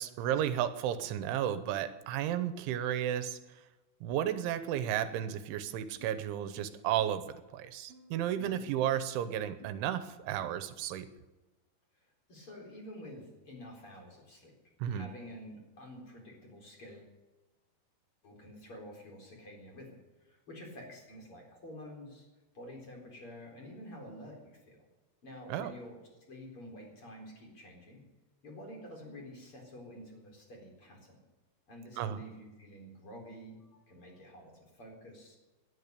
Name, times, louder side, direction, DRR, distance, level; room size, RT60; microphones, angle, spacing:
voice 1, 0.0-3.4 4.0-11.1 14.8-15.1 25.5-25.7 32.0-32.2, right 10 dB, 85° right, 11 dB, 3.4 m, -33 dB
sound 1, 5.1-5.4 6.0-6.2 7.0-7.3 7.9-8.1 8.7-9.0 9.6-9.9 10.4-10.7, right 2 dB, 45° right, 2.0 m, -57 dB
voice 2, 8.3-8.7 12.3-14.5 14.9-17.1 18.2-22.3 22.5-24.9 25.2-26.0 26.3-28.0 28.4-31.2 31.7-35.4, equal, 30° left, 0 dB, 4.6 m, -49 dB
19.5 x 11.0 x 6.7 m, 1.2 s
omnidirectional pair, 5.4 m